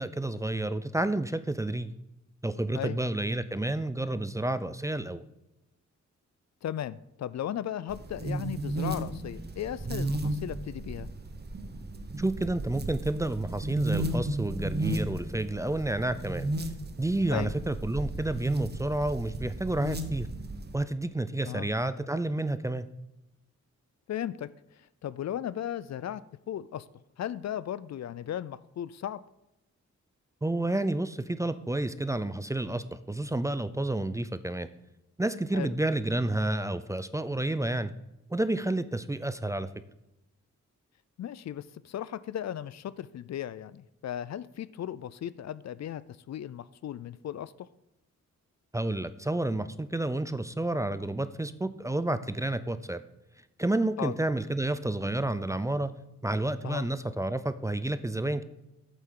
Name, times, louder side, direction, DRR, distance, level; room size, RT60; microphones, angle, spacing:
voice 1, 0.0-1.9 2.4-5.2 12.2-16.5 17.0-20.3 20.7-22.9 30.4-34.7 35.2-37.9 38.3-39.7 48.7-53.0 53.6-55.9 56.2-58.4, right 2 dB, 10° right, 13 dB, 0.4 m, -30 dB
voice 2, 6.6-11.1 17.3-17.5 21.4-21.7 24.1-24.5 25.0-26.2 26.5-26.8 27.2-29.2 35.5-35.7 41.2-46.0 46.3-47.7 54.0-54.1 56.6-56.9, left 10 dB, 65° left, 17 dB, 0.4 m, -36 dB
sound 1, 7.9-20.8, right 1 dB, 35° right, 1.0 m, -34 dB
8.3 x 7.6 x 3.8 m, 0.92 s
cardioid pair, 85°, 29 cm